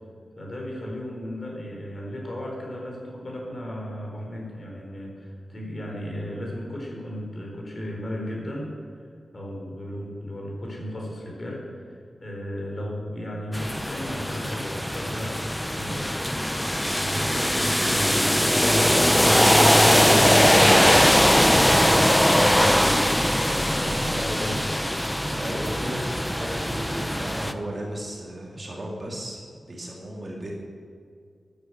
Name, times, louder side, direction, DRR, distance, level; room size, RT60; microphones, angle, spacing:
voice 1, 0.4-8.7 9.3-16.1 16.7-24.6, equal, 35° left, -1 dB, 4.4 m, -35 dB
sound 1, 13.5-27.5, equal, 5° left, 0.6 m, -21 dB
voice 2, 25.3-30.5, right 1 dB, 35° right, -1 dB, 2.5 m, -35 dB
13.5 x 10.5 x 7.8 m, 2.2 s
wide cardioid pair, 135°, 0 cm